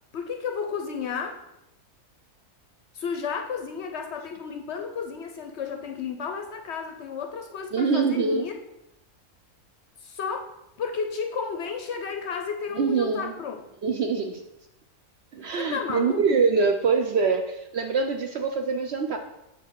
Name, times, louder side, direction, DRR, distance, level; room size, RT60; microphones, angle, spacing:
voice 1, 0.1-1.4 2.9-8.5 10.0-10.5 10.8-13.6 15.6-16.2, left 6 dB, 60° left, 5 dB, 0.7 m, -32 dB
voice 2, 7.7-8.5 12.8-13.3 13.8-14.4 15.3-19.2, right 5 dB, 65° right, 5 dB, 0.7 m, -24 dB
6.9 x 4.1 x 4.6 m, 0.89 s
omnidirectional pair, 1.5 m